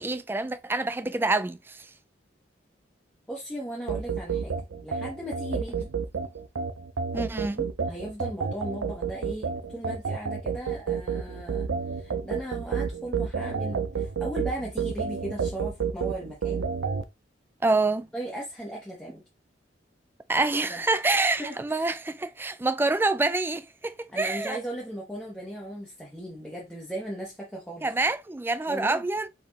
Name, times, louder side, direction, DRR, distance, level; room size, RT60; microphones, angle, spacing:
voice 1, 0.0-1.9 5.8-5.9 7.1-7.7 17.6-18.1 20.3-24.6 27.8-29.3, right 2 dB, 10° right, 0.3 m, -27 dB
voice 2, 3.3-4.5 4.8-5.8 7.8-16.6 18.1-19.2 20.7-20.8 21.4-21.9 24.1-27.9 28.7-29.0, right 1 dB, 5° left, 1.0 m, -37 dB
sound 1, 3.9-17.0, right 6 dB, 90° right, 0.5 m, -30 dB
4.5 x 3.2 x 3.5 m
head